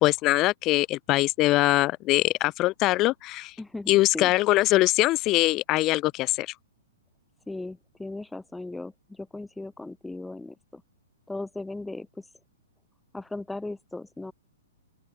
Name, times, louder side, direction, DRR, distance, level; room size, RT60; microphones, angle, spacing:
voice 1, 0.0-3.5 3.9-6.5, left 18 dB, 25° left, 0.7 m, -22 dB
voice 2, 3.6-4.3 7.5-10.8 11.3-12.2 13.1-14.3, left 2 dB, 5° left, 4.0 m, -37 dB
open air
hypercardioid pair, 155°, 0 cm